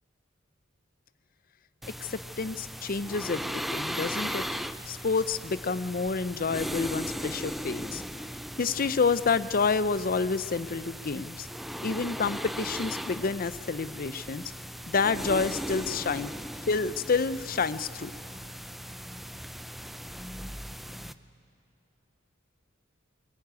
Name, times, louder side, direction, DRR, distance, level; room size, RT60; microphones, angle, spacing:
sound 1, 1.8-21.1, equal, ahead, 0.5 m, -38 dB
voice 1, 2.0-4.4 4.9-8.0 8.6-11.5 11.8-14.5 14.9-16.3 16.7-18.1, left 4 dB, 45° left, 15 dB, 0.6 m, -29 dB
22.5 x 22.0 x 9.5 m, 2.8 s
head